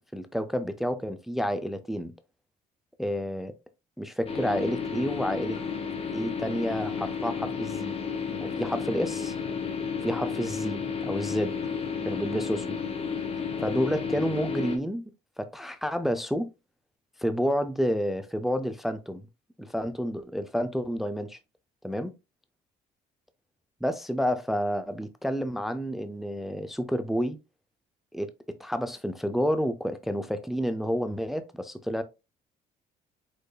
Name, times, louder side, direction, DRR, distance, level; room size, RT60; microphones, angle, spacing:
voice 1, 0.1-2.1 3.0-3.5 4.0-5.6 6.1-8.0 8.4-9.3 10.0-11.6 12.1-12.7 13.6-15.0 15.4-16.5 17.2-19.2 19.6-21.4 21.8-22.2 23.8-27.4 28.1-28.3 28.6-32.0, equal, ahead, 0.4 m, -29 dB
sound 1, 4.3-14.8, left 6 dB, 35° left, 1.1 m, -32 dB
4.9 x 4.2 x 2.2 m
cardioid pair, 110°, 17 cm